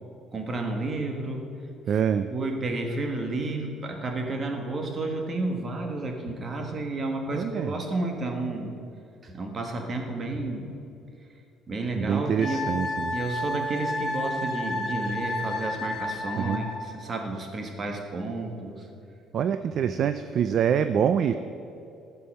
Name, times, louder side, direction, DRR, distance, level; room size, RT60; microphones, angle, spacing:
voice 1, 0.3-1.5 2.3-8.7 9.2-10.7 11.7-12.7 13.1-18.9 19.8-19.9, right 2 dB, 30° right, 3 dB, 1.3 m, -31 dB
voice 2, 1.9-2.3 7.3-7.7 12.0-13.1 16.4-16.6 19.3-21.3, right 8 dB, 45° right, 10 dB, 0.3 m, -25 dB
Wind instrument woodwind instrument, 12.4-16.9, left 1 dB, 25° left, 2.1 m, -31 dB
14.0 x 5.5 x 6.4 m, 2.6 s
cardioid pair, 145°, 0 cm